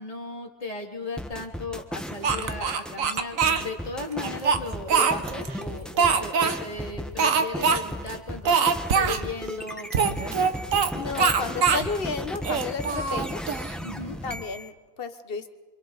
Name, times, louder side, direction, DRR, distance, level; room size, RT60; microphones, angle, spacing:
voice 1, 0.0-8.7 8.9-10.5 13.8-14.2, left 3 dB, 30° left, 1 dB, 2.5 m, -37 dB
sound 1, 1.2-14.7, equal, ahead, 1.2 m, -35 dB
Speech, 2.2-3.6 4.2-5.5 6.0-6.6 7.2-7.8 8.1-8.2 8.4-9.2 9.9-10.9 11.2-11.9 12.4-13.7, right 6 dB, 85° right, 1.5 m, -23 dB
voice 2, 10.9-13.4 14.2-15.5, left 5 dB, 45° left, 9 dB, 1.4 m, -32 dB
28.0 x 25.0 x 4.1 m, 1.3 s
omnidirectional pair, 1.4 m